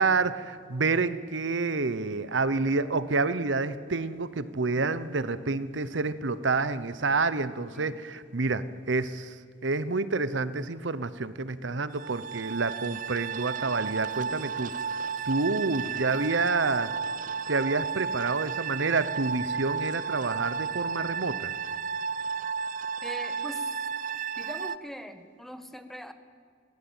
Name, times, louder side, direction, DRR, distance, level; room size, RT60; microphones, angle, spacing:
voice 1, 0.0-9.3 9.6-14.7 15.3-16.9 17.5-21.5, right 3 dB, 80° right, 15 dB, 1.0 m, -28 dB
sound 1, 12.0-24.8, right 6 dB, 45° right, 0.6 m, -33 dB
voice 2, 23.0-23.7 24.4-26.1, equal, ahead, 9 dB, 1.4 m, -41 dB
24.0 x 17.5 x 9.0 m, 2.1 s
head